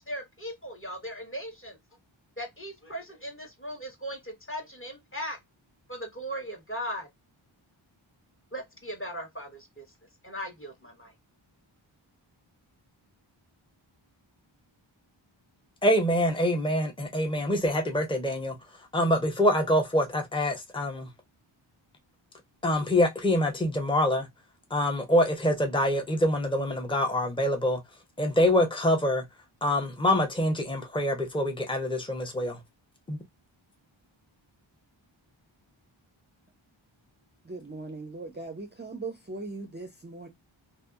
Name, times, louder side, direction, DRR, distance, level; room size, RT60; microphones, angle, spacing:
voice 1, 0.0-1.8 2.4-5.4 5.9-7.1 8.5-9.8 10.2-11.1, equal, 25° left, 1.3 m, -38 dB
voice 2, 15.8-18.5 18.9-21.1 22.6-24.3 24.7-27.8 28.2-29.2 29.6-32.6 33.1-33.2, left 1 dB, 10° left, 0.8 m, -25 dB
voice 3, 37.4-40.3, right 3 dB, 20° right, 0.5 m, -39 dB
2.6 x 2.6 x 2.3 m
wide cardioid pair, 60°, 49 cm